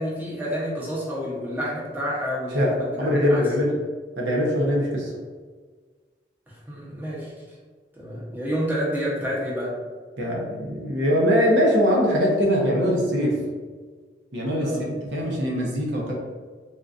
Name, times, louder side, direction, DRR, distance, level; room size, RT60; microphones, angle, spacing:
voice 1, 0.0-3.4 6.5-7.3 8.0-9.7 14.6-14.9, equal, 10° right, -6 dB, 0.8 m, -29 dB
voice 2, 3.0-3.7 4.2-5.1 10.2-13.4 14.3-16.1, equal, 85° right, -2 dB, 0.7 m, -22 dB
3.6 x 2.5 x 2.5 m, 1.5 s
head